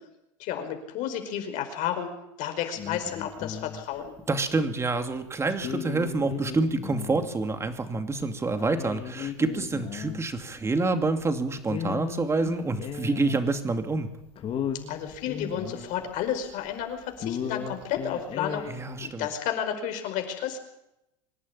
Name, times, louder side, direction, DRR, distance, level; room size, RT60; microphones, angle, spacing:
voice 1, 0.4-2.1 2.4-4.1 14.9-18.7 19.0-20.6, left 9 dB, 55° left, 6 dB, 5.1 m, -31 dB
sound 1, 2.8-4.3 4.8-4.9 5.5-7.3 7.6-7.7 8.2-8.3 8.5-11.4 11.7-13.8 14.0-14.1 14.3-16.8 17.1-19.1, left 8 dB, 35° left, 2.8 m, -36 dB
voice 2, 4.3-14.1 18.7-19.3, right 3 dB, 15° right, 7 dB, 2.5 m, -27 dB
25.5 x 11.5 x 9.9 m, 0.86 s
supercardioid pair, 110°, 16 cm